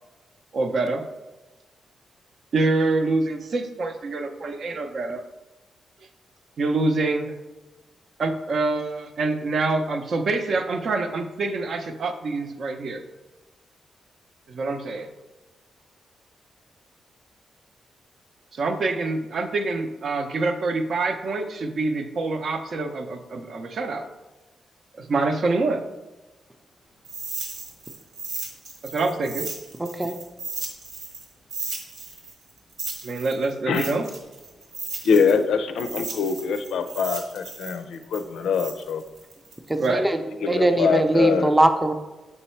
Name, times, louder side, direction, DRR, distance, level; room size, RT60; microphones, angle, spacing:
voice 1, 0.5-1.0 2.5-5.2 6.6-7.3 8.2-13.0 14.5-15.1 18.5-24.1 25.0-25.8 28.8-29.5 33.0-34.1 39.8-40.1, right 3 dB, 60° right, 7 dB, 0.6 m, -26 dB
sound 1, 27.0-31.2 31.5-35.4 35.8-39.9, right 4 dB, 85° right, 1.3 m, -35 dB
voice 2, 29.8-30.1 39.7-41.9, right 1 dB, 15° right, 6 dB, 0.5 m, -21 dB
voice 3, 35.0-39.0 40.4-41.5, left 5 dB, 85° left, 9 dB, 0.4 m, -23 dB
5.5 x 4.0 x 4.4 m, 1.1 s
cardioid pair, 85°, 0 cm